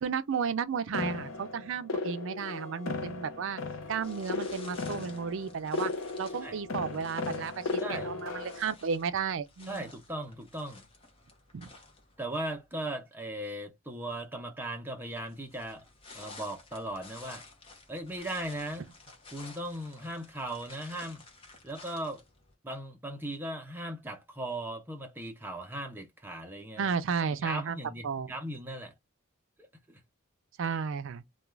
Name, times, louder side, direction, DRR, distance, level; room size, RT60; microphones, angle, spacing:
voice 1, 0.0-3.6 3.9-5.9 6.2-9.9 11.5-11.7 26.8-27.8 28.0-28.3 30.6-31.2, right 6 dB, 60° right, 0.4 m, -33 dB
sound 1, 0.9-8.6, left 3 dB, 65° left, 0.6 m, -36 dB
sound 2, 4.0-12.6 15.2-22.5, left 3 dB, 25° left, 0.7 m, -53 dB
voice 2, 7.8-8.1 9.7-10.9 12.2-15.8 16.1-17.4 17.9-18.9 19.3-21.2 21.6-22.2 22.6-26.9 27.4-28.9 29.9-30.0, right 1 dB, 10° right, 0.6 m, -38 dB
2.4 x 2.2 x 3.1 m
head